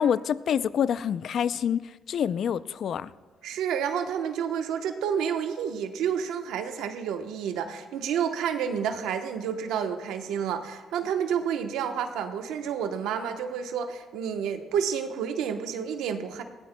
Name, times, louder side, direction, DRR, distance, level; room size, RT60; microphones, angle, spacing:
voice 1, 0.0-3.1, left 8 dB, 65° left, 16 dB, 0.4 m, -27 dB
voice 2, 3.4-16.4, right 8 dB, 90° right, 6 dB, 0.9 m, -30 dB
20.0 x 16.0 x 2.2 m, 1.4 s
cardioid pair, 90°, 0 cm